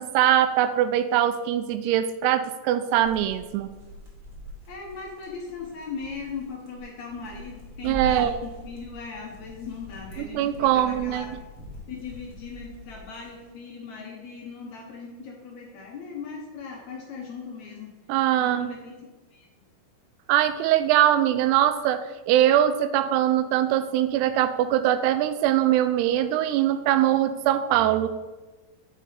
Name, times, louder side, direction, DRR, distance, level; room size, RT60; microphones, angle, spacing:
voice 1, 0.0-3.7 7.8-8.4 10.2-11.3 18.1-18.7 20.3-28.1, right 11 dB, 85° right, 11 dB, 2.7 m, -22 dB
sound 1, 2.9-13.4, equal, 40° right, 1.7 m, -43 dB
voice 2, 4.7-11.4 11.9-17.9 18.4-18.9 19.3-19.5, left 5 dB, 70° left, 0 dB, 1.8 m, -39 dB
10.5 x 5.4 x 5.0 m, 1.2 s
omnidirectional pair, 4.7 m